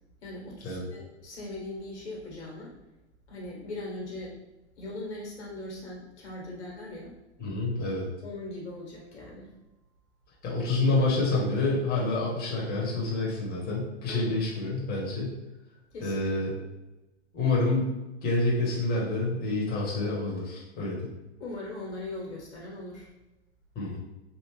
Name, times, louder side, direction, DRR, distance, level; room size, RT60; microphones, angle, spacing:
voice 1, 0.2-2.7 3.3-4.4 4.8-7.1 8.2-9.5 14.1-14.5 15.9-16.2 21.4-23.1, left 2 dB, 75° left, -3 dB, 1.5 m, -40 dB
voice 2, 7.4-8.1 10.4-15.3 16.0-16.5 17.3-17.9 18.2-21.1 23.7-24.0, left 2 dB, 25° left, -4 dB, 1.2 m, -28 dB
3.5 x 2.4 x 3.1 m, 1.0 s
hypercardioid pair, 110°, 34 cm